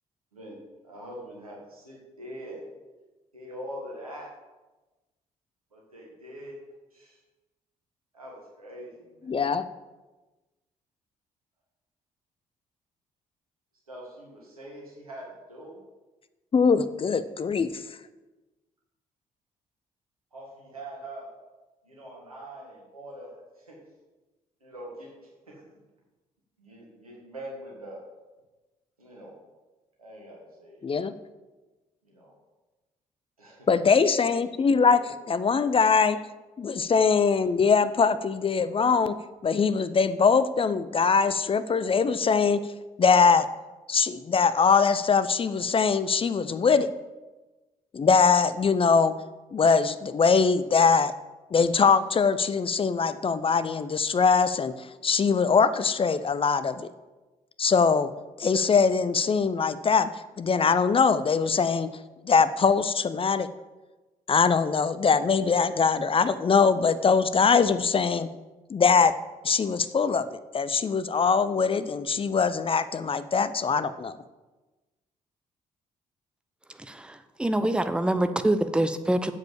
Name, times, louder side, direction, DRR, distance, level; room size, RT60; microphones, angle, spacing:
voice 1, 0.8-2.7 3.3-4.3 5.7-6.6 6.9-7.2 8.1-9.5 13.9-15.8 20.3-21.3 21.8-23.8 24.6-25.7 26.6-28.0 29.0-29.4 30.0-31.1 32.0-32.3 33.4-33.7 34.7-35.0, right 1 dB, 90° right, -3 dB, 1.8 m, -43 dB
voice 2, 9.3-9.6 16.5-17.8 30.8-31.1 33.7-35.0 35.3-36.2 36.6-39.2 39.4-42.6 43.0-43.5 43.9-46.9 47.9-49.1 49.5-51.1 51.5-56.9 57.6-58.1 58.4-60.1 60.4-61.9 62.2-63.5 64.3-68.3 68.7-69.1 69.4-74.2, left 5 dB, 30° left, 13 dB, 0.6 m, -22 dB
voice 3, 76.8-79.3, right 1 dB, 5° right, 10 dB, 0.7 m, -25 dB
7.8 x 6.6 x 7.1 m, 1.2 s
figure-of-eight pair, 45°, 18 cm